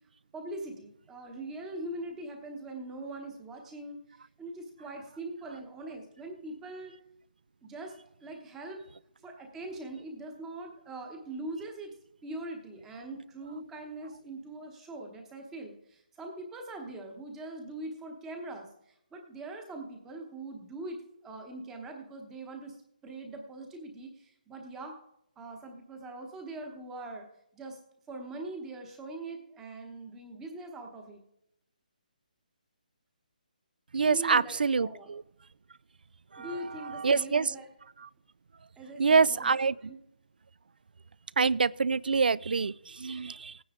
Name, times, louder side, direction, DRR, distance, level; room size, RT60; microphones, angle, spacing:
voice 1, 0.3-7.0 7.6-7.9 8.2-8.8 9.2-11.9 12.2-22.8 23.0-25.0 25.4-27.3 27.5-27.8 28.1-31.2 34.0-35.1 36.4-37.7 38.8-39.6 39.9-40.0, right 2 dB, 5° right, 0.9 m, -42 dB
voice 2, 33.9-35.2 36.3-37.5 38.0-38.1 39.0-39.8 41.4-43.6, right 5 dB, 90° right, 0.4 m, -26 dB
17.5 x 9.3 x 3.6 m
hypercardioid pair, 175°, 5 cm